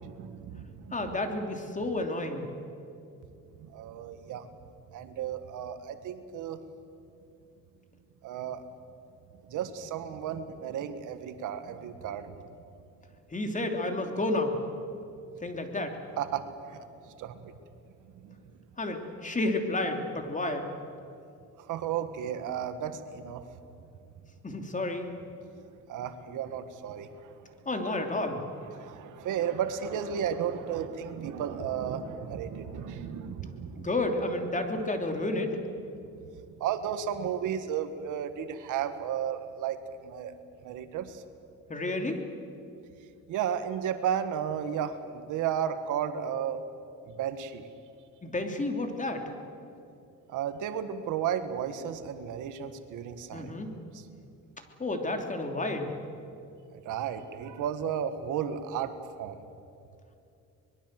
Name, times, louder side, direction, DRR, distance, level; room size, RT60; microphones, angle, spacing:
voice 1, 0.0-1.2 3.6-4.5 4.9-6.6 8.2-8.6 9.5-12.4 16.2-17.5 18.2-18.4 21.6-23.4 23.8-23.9 25.4-27.5 28.7-33.9 36.6-40.3 40.6-41.2 43.3-46.6 47.1-47.7 50.3-53.6 53.9-54.0 56.7-59.4, right 8 dB, 85° right, 10 dB, 1.6 m, -34 dB
voice 2, 0.9-2.5 13.3-14.6 15.4-16.0 18.8-20.7 24.4-25.1 27.6-28.4 33.7-35.6 41.7-42.3 48.2-49.3 53.3-53.7 54.8-55.9, left 2 dB, 25° left, 4 dB, 3.1 m, -31 dB
24.0 x 21.5 x 7.7 m, 2.6 s
cardioid pair, 90°, 30 cm